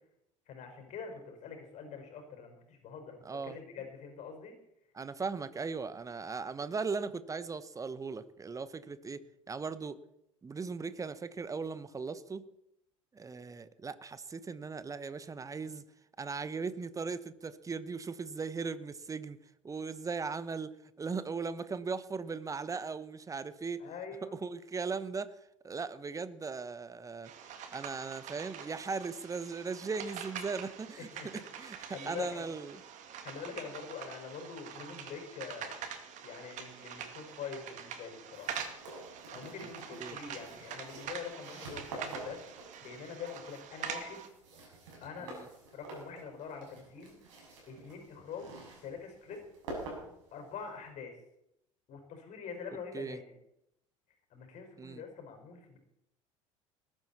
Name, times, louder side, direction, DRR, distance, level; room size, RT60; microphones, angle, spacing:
voice 1, 0.5-4.6 23.8-24.4 31.0-31.3 31.9-32.5 33.2-35.9 36.2-38.7 39.3-42.4 42.8-44.2 45.0-45.3 45.7-47.2 47.7-48.5 48.8-49.4 50.3-51.2 51.9-53.3 54.3-55.8, left 6 dB, 45° left, 4 dB, 5.3 m, -44 dB
voice 2, 3.2-3.6 4.9-10.0 10.4-12.5 13.1-15.8 16.2-19.4 19.6-23.8 24.3-25.4 25.6-27.3 27.7-32.8 40.0-40.2 45.2-45.5 52.9-53.2 54.8-55.0, right 4 dB, 20° right, 15 dB, 1.1 m, -38 dB
sound 1, 27.2-44.3, right 8 dB, 45° right, 2.3 m, -45 dB
sound 2, 38.3-50.9, right 2 dB, 65° right, 6.9 m, -48 dB
20.5 x 13.0 x 4.3 m, 0.81 s
figure-of-eight pair, 70°, 17 cm